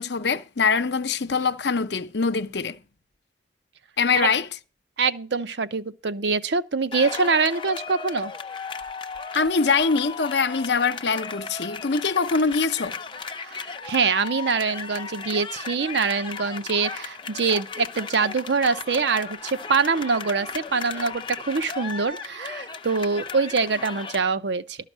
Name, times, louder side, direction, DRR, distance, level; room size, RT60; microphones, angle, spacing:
voice 1, 0.0-2.8 4.0-4.5 9.3-13.0, left 5 dB, 70° left, 0.7 m, -23 dB
voice 2, 5.0-8.3 13.4-24.8, right 4 dB, 75° right, 0.7 m, -24 dB
sound 1, 6.9-24.2, left 5 dB, 25° left, 0.5 m, -36 dB
12.5 x 5.8 x 7.3 m
head